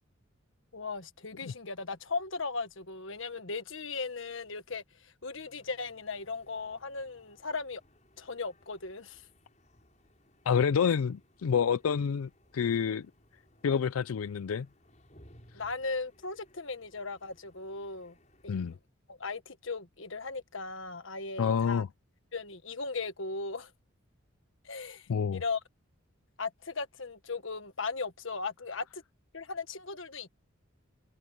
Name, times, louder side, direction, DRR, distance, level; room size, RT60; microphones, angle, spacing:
voice 1, 0.7-7.8 8.2-9.2 10.9-11.0 15.5-18.2 18.4-18.5 19.1-21.8 22.3-23.7 24.6-25.6 26.4-29.0 29.3-30.3, left 4 dB, 65° left, 1.5 m, -37 dB
sound 1, 5.3-18.8, left 1 dB, 35° left, 7.5 m, -63 dB
voice 2, 10.5-13.1 13.6-14.7 18.5-18.7 21.4-21.9 25.1-25.4, left 7 dB, 85° left, 0.4 m, -28 dB
head